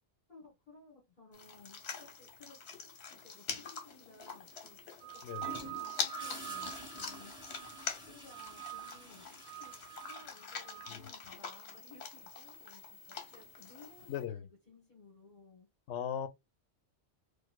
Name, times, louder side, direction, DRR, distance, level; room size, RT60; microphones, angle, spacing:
voice 1, 0.3-7.3 8.1-9.8 10.1-15.7, left 3 dB, 45° left, 1.7 m, -58 dB
sound 1, 1.3-14.2, left 5 dB, 65° left, 1.1 m, -45 dB
sound 2, 5.0-7.9 8.3-9.1 9.4-11.0, right 19 dB, 55° right, 0.6 m, -46 dB
Gurgling / Toilet flush, 5.4-11.1 13.1-13.4, equal, 5° right, 1.4 m, -50 dB
voice 2, 14.1-14.4 15.9-16.3, left 9 dB, 90° left, 0.9 m, -37 dB
4.5 x 2.3 x 2.3 m
omnidirectional pair, 1.2 m